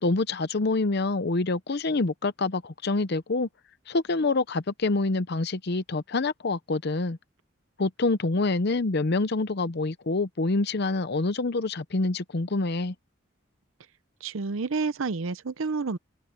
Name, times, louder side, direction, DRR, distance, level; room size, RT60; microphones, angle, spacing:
voice 1, 0.0-3.5 3.9-7.2 7.8-12.9, left 3 dB, 50° left, 0.7 m, -26 dB
voice 2, 14.2-16.0, right 4 dB, 70° right, 0.6 m, -29 dB
open air
head